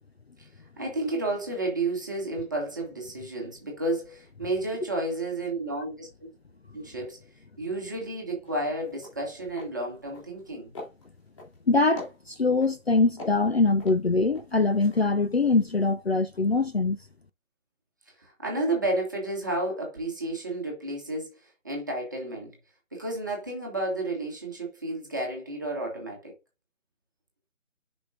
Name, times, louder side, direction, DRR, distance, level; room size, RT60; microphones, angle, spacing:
voice 1, 0.8-6.3 6.7-7.3 7.6-10.7 18.1-22.6 22.9-26.4, right 2 dB, 15° right, 1.2 m, -31 dB
sound 1, 8.4-8.6 8.9-9.2 9.5-9.7 10.1-10.5 10.7-11.6 12.0-12.7 13.2-14.5 14.8-15.0, left 2 dB, 20° left, 3.4 m, -42 dB
voice 2, 11.7-17.0, left 3 dB, 50° left, 0.5 m, -23 dB
9.7 x 5.2 x 2.6 m
figure-of-eight pair, 175°, 41 cm